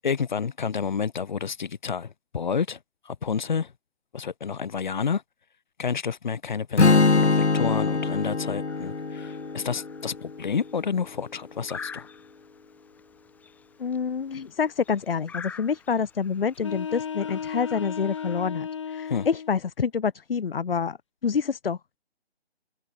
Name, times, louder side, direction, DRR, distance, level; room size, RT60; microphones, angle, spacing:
voice 1, 0.0-2.8 3.0-3.7 4.1-5.2 5.8-12.1 19.1-19.3, left 6 dB, 45° left, 2.5 m, -29 dB
Strum, 6.8-10.9, left 4 dB, 80° left, 1.2 m, -23 dB
sound 1, 8.7-18.5, left 6 dB, 5° left, 2.7 m, -46 dB
voice 2, 13.8-21.0 21.2-22.0, left 6 dB, 60° left, 0.7 m, -27 dB
sound 2, 16.6-19.6, left 7 dB, 30° left, 0.9 m, -34 dB
figure-of-eight pair, 145°, 33 cm